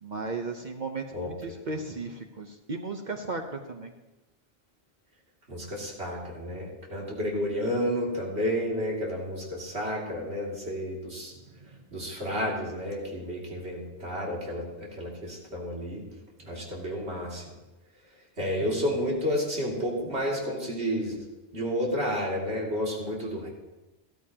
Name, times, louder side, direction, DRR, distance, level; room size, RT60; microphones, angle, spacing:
voice 1, 0.0-3.9, right 3 dB, 45° right, 5 dB, 0.9 m, -35 dB
voice 2, 5.5-11.3 11.9-16.0 16.4-17.5 18.4-21.1 21.5-23.5, equal, 75° right, -3 dB, 2.9 m, -31 dB
13.5 x 13.5 x 2.9 m, 1.1 s
omnidirectional pair, 1.1 m